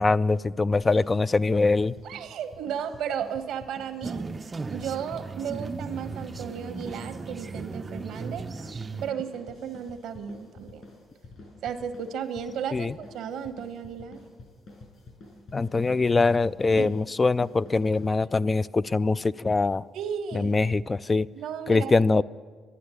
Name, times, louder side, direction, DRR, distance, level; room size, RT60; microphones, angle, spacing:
voice 1, 0.0-1.9 12.7-12.9 15.5-19.8 20.4-21.3 21.7-22.2, left 3 dB, 25° left, 16 dB, 0.3 m, -23 dB
sound 1, 0.8-18.5, left 2 dB, 60° left, 6.1 m, -49 dB
voice 2, 2.0-4.3 4.7-10.8 11.6-14.2 16.8-16.9 19.9-20.5 21.3-21.9, right 8 dB, 85° right, 9 dB, 1.1 m, -34 dB
sound 2, 4.0-9.1, right 4 dB, 30° right, 0.5 m, -36 dB
12.0 x 11.0 x 9.5 m, 1.5 s
cardioid pair, 90°, 0 cm